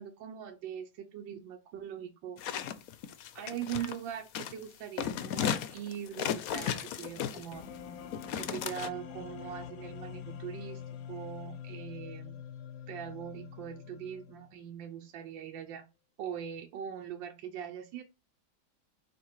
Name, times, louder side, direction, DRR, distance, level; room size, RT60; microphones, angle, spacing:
voice 1, 0.0-2.4 3.3-7.6 8.4-10.8 11.1-12.4 12.9-15.8 16.2-18.0, right 9 dB, 70° right, 3 dB, 1.5 m, -41 dB
sound 1, 2.4-4.0 4.3-4.6 5.0-7.7 8.1-8.9, left 9 dB, 70° left, 0.8 m, -35 dB
sound 2, 7.5-14.5, left 8 dB, 90° left, 1.5 m, -45 dB
5.5 x 3.8 x 5.6 m, 0.27 s
omnidirectional pair, 2.2 m